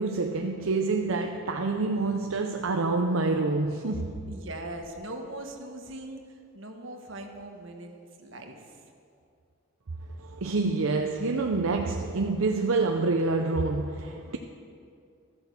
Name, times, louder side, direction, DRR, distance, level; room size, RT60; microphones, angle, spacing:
voice 1, 0.0-4.1 10.2-14.4, right 3 dB, 90° right, 0.7 m, -27 dB
voice 2, 4.3-7.9 8.2-8.8, right 1 dB, 70° right, 1.4 m, -40 dB
13.5 x 8.0 x 7.0 m
head